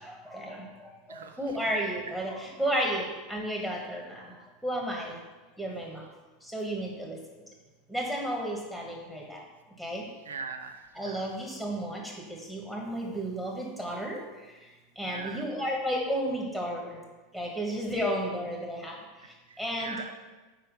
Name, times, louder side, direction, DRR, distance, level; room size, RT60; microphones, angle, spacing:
voice 1, 0.0-0.6 1.4-3.0 3.3-4.2 4.6-5.1 5.6-6.0 6.5-7.2 7.9-9.4 9.8-10.0 10.9-12.0 12.3-14.2 15.0-17.0 17.3-18.9 19.6-20.1, equal, 10° right, -2 dB, 1.3 m, -32 dB
voice 2, 10.2-11.3 15.0-15.6 19.2-20.1, right 5 dB, 85° right, 6 dB, 0.6 m, -42 dB
4.8 x 4.3 x 5.2 m, 1.2 s
hypercardioid pair, 90°, 0 cm